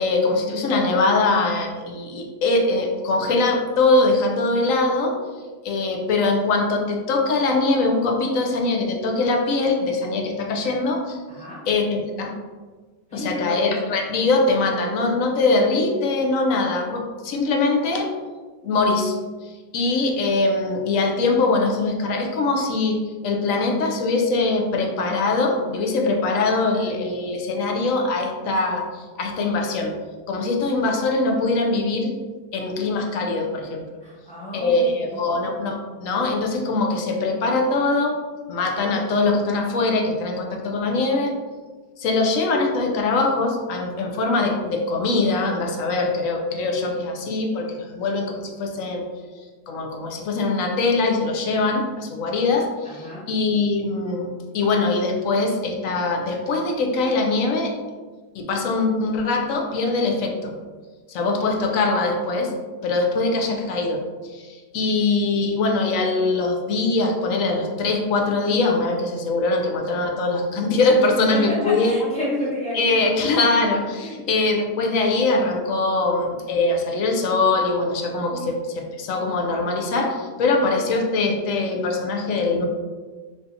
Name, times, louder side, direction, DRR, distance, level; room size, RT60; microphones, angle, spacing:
voice 1, 0.0-5.2 5.6-11.2 11.7-12.3 13.1-18.1 18.6-19.2 19.4-23.0 23.2-29.9 30.3-32.1 32.5-33.8 34.5-38.2 38.5-41.3 42.0-49.0 49.7-57.7 58.3-60.5 61.1-62.5 62.8-64.0 64.3-71.9 72.7-82.6, left 3 dB, 65° left, 2 dB, 0.9 m, -22 dB
voice 2, 13.1-13.7 34.0-35.2 53.0-53.2 64.8-64.9 71.3-72.8 74.0-74.3 78.2-78.5, left 1 dB, 5° left, -8 dB, 1.2 m, -30 dB
3.4 x 2.7 x 4.0 m, 1.4 s
omnidirectional pair, 1.7 m